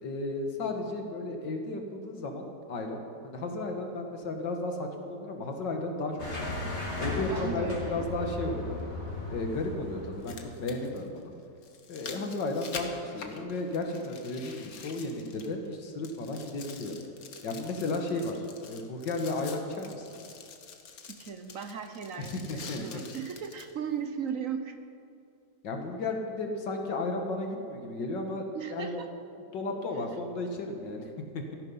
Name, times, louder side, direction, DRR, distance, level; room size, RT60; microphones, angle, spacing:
voice 1, 0.0-6.6 7.0-8.8 9.3-11.3 11.9-17.0 17.4-20.1 22.2-23.0 25.6-29.0 29.5-31.1 31.3-31.6, left 2 dB, 85° left, 3 dB, 2.2 m, -34 dB
sound 1, 6.2-10.9, left 2 dB, 40° left, 3.0 m, -36 dB
sound 2, 6.8-6.9 8.8-8.9 10.0-15.7 16.0-23.7 24.3-24.4, left 5 dB, 55° left, 1.6 m, -46 dB
voice 2, 7.3-8.1 12.3-12.4 21.2-24.8 28.5-29.1, right 7 dB, 55° right, 8 dB, 1.0 m, -37 dB
17.0 x 13.5 x 5.6 m, 2.6 s
omnidirectional pair, 1.9 m